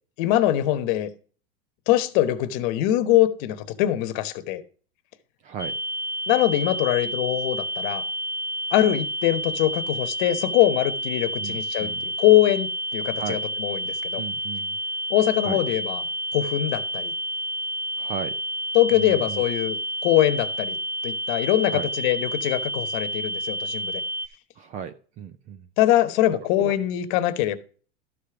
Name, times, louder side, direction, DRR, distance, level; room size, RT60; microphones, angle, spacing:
voice 1, 0.2-1.1 1.9-4.6 6.3-8.0 8.7-14.2 15.1-16.0 16.3-17.1 18.7-19.8 20.0-20.8 21.0-24.0 25.8-27.6, left 13 dB, 50° left, 11 dB, 1.1 m, -22 dB
voice 2, 5.4-5.8 11.4-12.0 13.2-13.4 14.2-14.8 15.4-15.6 18.0-18.4 18.9-19.4 21.7-21.9 24.6-25.7 26.3-26.8, right 8 dB, 25° right, 14 dB, 0.4 m, -36 dB
sound 1, 5.6-24.3, right 1 dB, 10° left, 1.1 m, -30 dB
12.5 x 5.0 x 5.9 m, 0.41 s
supercardioid pair, 155°, 33 cm